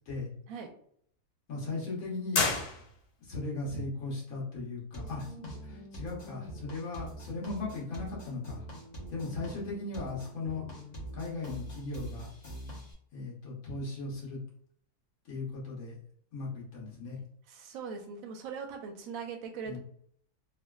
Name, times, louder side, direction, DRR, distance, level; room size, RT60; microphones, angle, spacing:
voice 1, 1.5-2.4 3.2-8.6 9.1-10.6 11.1-12.3 13.1-14.4 15.3-15.9 16.3-17.2 19.6-19.8, left 3 dB, 60° left, -4 dB, 1.5 m, -37 dB
sound 1, 2.3-3.3, left 4 dB, 85° left, 1.3 m, -30 dB
sound 2, 4.9-12.9, right 1 dB, 35° left, 0.8 m, -44 dB
voice 2, 17.5-19.8, right 6 dB, 70° right, 3 dB, 0.9 m, -40 dB
3.4 x 2.3 x 2.3 m, 0.65 s
omnidirectional pair, 1.7 m